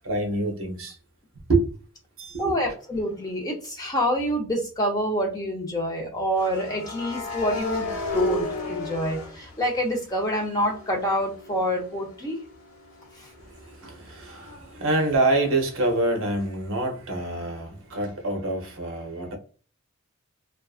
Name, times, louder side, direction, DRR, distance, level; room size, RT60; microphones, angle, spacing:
voice 1, 0.0-1.0 1.5-1.7 2.2-2.7 13.7-19.4, right 2 dB, 65° right, 0.7 m, -26 dB
voice 2, 2.4-12.4 13.2-13.3, equal, 15° left, 0.6 m, -27 dB
sound 1, 3.0-3.2 6.3-10.2 10.6-14.2, left 3 dB, 75° left, 0.9 m, -34 dB
2.5 x 2.3 x 2.3 m
head